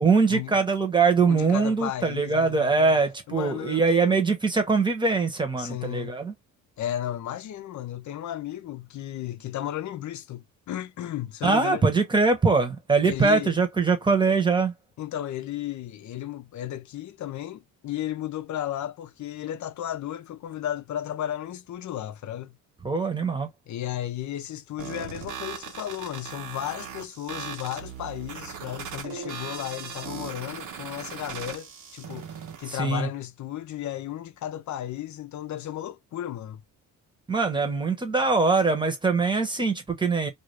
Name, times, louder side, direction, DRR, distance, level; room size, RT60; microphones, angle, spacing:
voice 1, 0.0-6.3 11.4-14.7 22.8-23.5 32.7-33.1 37.3-40.3, right 4 dB, 15° right, 1.0 m, -22 dB
voice 2, 1.3-3.0 3.3-4.2 5.6-6.2 6.8-11.8 13.0-13.6 15.0-22.6 23.7-32.3 32.6-36.6, left 12 dB, 60° left, 0.7 m, -34 dB
sound 1, 24.8-32.8, right 7 dB, 60° right, 0.9 m, -39 dB
2.6 x 2.4 x 3.2 m
cardioid pair, 125°, 34 cm